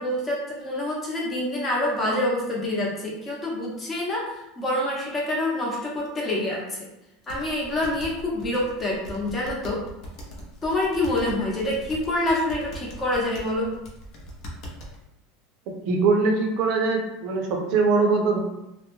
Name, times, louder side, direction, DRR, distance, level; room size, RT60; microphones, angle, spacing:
voice 1, 0.0-6.9 7.3-9.8 10.6-13.7, left 1 dB, 20° left, -4 dB, 0.8 m, -26 dB
sound 1, 7.3-15.0, right 1 dB, 55° left, 0.7 m, -41 dB
voice 2, 15.8-18.4, right 4 dB, 55° right, 1 dB, 0.6 m, -22 dB
2.2 x 2.1 x 3.0 m, 0.88 s
supercardioid pair, 130°, 0 cm